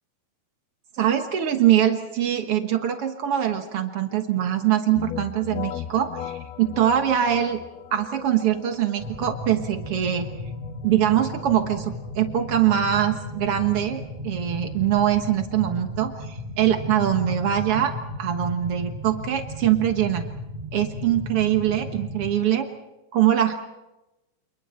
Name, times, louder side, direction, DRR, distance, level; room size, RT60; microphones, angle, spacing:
voice 1, 1.0-7.6 7.9-10.3 10.8-17.9 18.2-20.2 20.7-22.7 23.1-23.5, right 10 dB, 85° right, 6 dB, 1.2 m, -23 dB
sound 1, 5.0-14.5, left 11 dB, 75° left, 2.8 m, -39 dB
sound 2, 9.0-22.3, left 1 dB, 20° right, 1.3 m, -35 dB
29.5 x 29.0 x 4.4 m, 0.99 s
omnidirectional pair, 4.8 m